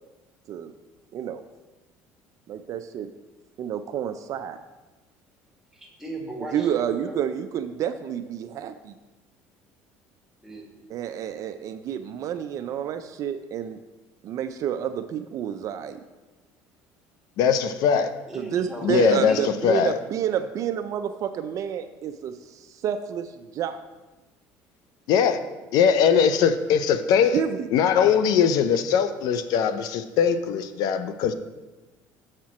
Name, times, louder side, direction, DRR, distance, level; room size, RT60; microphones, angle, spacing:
voice 1, 2.5-3.1 3.6-4.6 6.5-8.9 10.9-13.8 14.2-16.0 18.4-23.8 27.3-27.7, right 9 dB, 50° right, 9 dB, 0.4 m, -29 dB
voice 2, 5.7-7.2 10.4-10.7 18.3-18.9 19.3-19.5, right 1 dB, 5° right, -1 dB, 1.8 m, -37 dB
voice 3, 17.4-18.1 18.8-20.0 25.1-25.4 25.7-27.4 27.7-31.3, left 7 dB, 65° left, 11 dB, 0.5 m, -21 dB
7.4 x 4.3 x 5.9 m, 1.2 s
cardioid pair, 115°, 7 cm